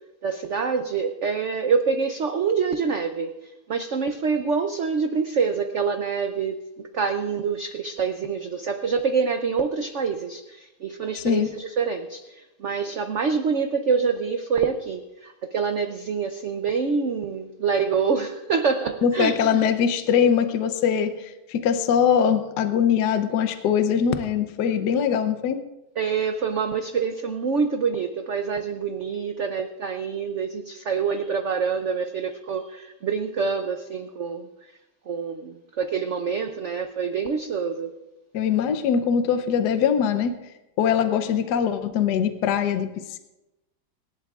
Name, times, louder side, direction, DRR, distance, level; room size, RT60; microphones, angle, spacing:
voice 1, 0.2-19.3 26.0-34.5 35.1-38.0, right 5 dB, 70° right, 6 dB, 0.7 m, -26 dB
voice 2, 11.2-11.5 19.0-25.6 38.3-40.3 40.8-43.2, left 7 dB, 65° left, 8 dB, 1.2 m, -22 dB
25.5 x 11.5 x 2.4 m, 0.98 s
omnidirectional pair, 2.1 m